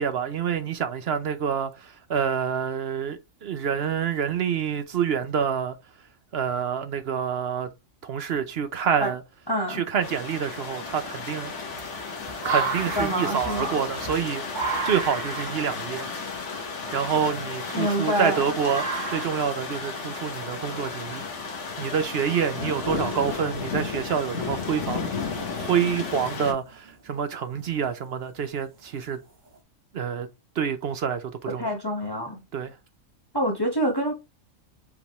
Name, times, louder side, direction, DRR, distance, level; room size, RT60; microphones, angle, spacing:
voice 1, 0.0-5.8 6.3-7.7 8.0-9.2 9.7-11.5 12.4-14.5 14.8-16.1 16.9-21.2 21.8-25.1 25.3-29.2 29.9-30.3 30.6-31.7 32.5-32.7, right 7 dB, 55° right, 0.8 m, -27 dB
voice 2, 9.5-9.8 12.9-13.8 17.7-18.5 31.6-32.4 33.3-34.1, equal, 20° left, 1.1 m, -26 dB
sound 1, 10.0-26.5, left 5 dB, 60° left, 1.5 m, -33 dB
sound 2, 10.8-18.2 18.6-19.5 20.8-20.9 22.2-22.3 25.0-25.3 25.7-26.1 26.7-27.2 27.9-28.0 28.9-29.0 29.5-29.6, right 4 dB, 35° right, 1.2 m, -34 dB
5.0 x 3.4 x 3.0 m
omnidirectional pair, 1.4 m